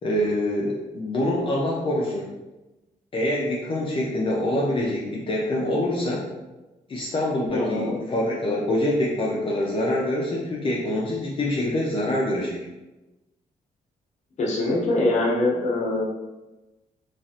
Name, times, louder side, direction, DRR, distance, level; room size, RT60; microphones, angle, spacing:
voice 1, 0.0-2.3 3.1-6.2 6.9-12.6, left 1 dB, 35° left, -4 dB, 0.5 m, -25 dB
voice 2, 7.5-8.0 14.4-16.0, left 2 dB, 50° left, -3 dB, 0.9 m, -23 dB
3.1 x 2.4 x 2.7 m, 1.1 s
cardioid pair, 105°, 15 cm